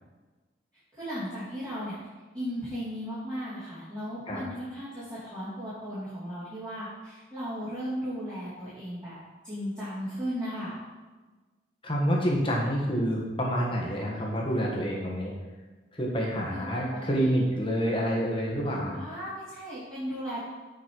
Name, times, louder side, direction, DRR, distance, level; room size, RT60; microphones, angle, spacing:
voice 1, 0.9-1.9 2.3-9.2 9.4-10.7 16.5-17.3 18.9-20.4, equal, 20° right, -13 dB, 2.8 m, -36 dB
voice 2, 11.8-15.3 15.9-19.0, equal, 30° left, -2 dB, 1.5 m, -28 dB
7.5 x 5.5 x 4.8 m, 1.3 s
head